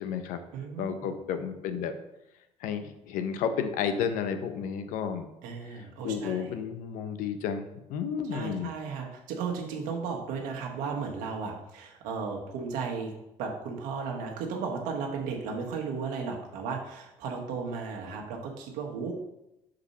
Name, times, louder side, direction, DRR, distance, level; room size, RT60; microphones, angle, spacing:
voice 1, 0.0-0.4 0.8-2.0 2.6-5.3 6.0-8.7, left 7 dB, 85° left, 9 dB, 0.6 m, -32 dB
voice 2, 0.5-1.1 5.4-6.6 8.3-13.1 13.4-19.1, right 5 dB, 85° right, 1 dB, 1.2 m, -35 dB
5.2 x 4.2 x 5.4 m, 0.90 s
supercardioid pair, 85°, 13 cm